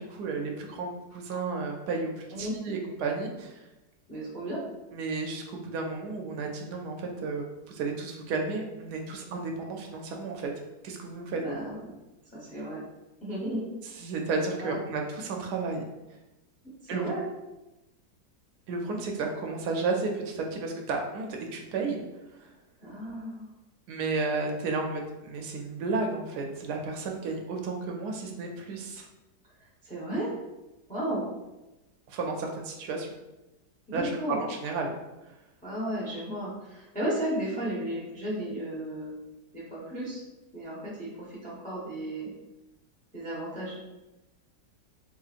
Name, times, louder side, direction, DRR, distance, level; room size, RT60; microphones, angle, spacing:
voice 1, 0.0-3.7 4.9-10.5 10.8-11.4 13.8-15.8 16.9-17.1 18.7-22.0 22.4-22.5 23.9-29.1 32.1-33.1 33.9-35.0 35.2-35.3, right 3 dB, 75° right, 2 dB, 1.1 m, -32 dB
voice 2, 4.1-4.6 11.4-11.9 12.3-12.8 13.2-13.6 14.6-14.8 16.8-17.2 22.8-23.5 29.8-30.3 30.9-31.3 33.9-34.4 35.6-39.2 39.5-40.2 40.5-42.3 43.1-43.7, right 1 dB, 10° left, -6 dB, 0.5 m, -34 dB
3.8 x 2.8 x 2.4 m, 1.0 s
omnidirectional pair, 1.8 m